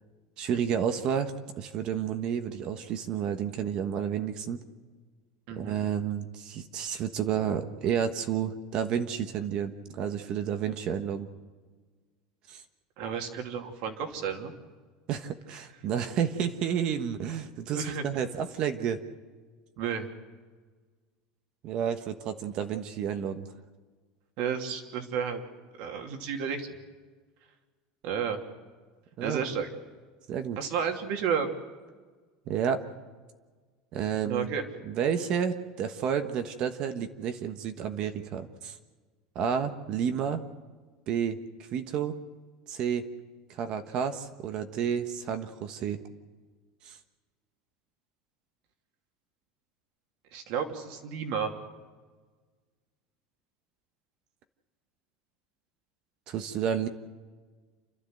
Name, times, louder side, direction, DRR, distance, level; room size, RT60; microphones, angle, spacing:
voice 1, 0.4-1.3 1.6-4.6 5.6-11.3 12.5-12.6 15.1-19.0 21.6-23.5 29.2-29.6 30.3-30.6 32.5-32.8 33.9-34.5 34.8-38.7 39.3-40.4 41.1-41.4 41.7-42.2 42.7-43.1 43.5-46.0 46.8-47.0 56.3-56.9, right 8 dB, 40° right, 8 dB, 1.3 m, -30 dB
voice 2, 13.0-14.5 17.7-18.0 19.8-20.1 24.4-25.4 25.8-26.7 28.0-28.4 29.2-29.7 30.6-31.5 34.2-34.6 50.3-51.5, right 7 dB, 55° right, 4 dB, 2.8 m, -31 dB
29.0 x 13.0 x 7.9 m, 1.4 s
cardioid pair, 165°, 2 cm